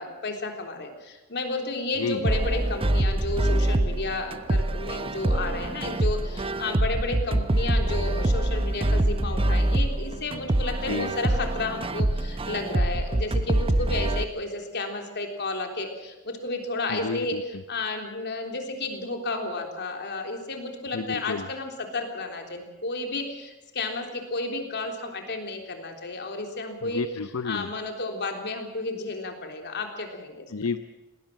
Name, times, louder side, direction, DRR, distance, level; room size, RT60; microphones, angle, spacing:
voice 1, 0.0-17.4 17.7-27.0 27.4-30.5, left 2 dB, 55° left, 4 dB, 3.6 m, -32 dB
sound 1, 2.2-14.2, right 1 dB, 25° right, 0.8 m, -25 dB
voice 2, 10.8-11.2 16.9-17.6 20.9-21.5 26.8-27.7 30.5-30.8, left 4 dB, 75° left, 11 dB, 0.7 m, -31 dB
19.5 x 18.5 x 7.5 m, 1.1 s
head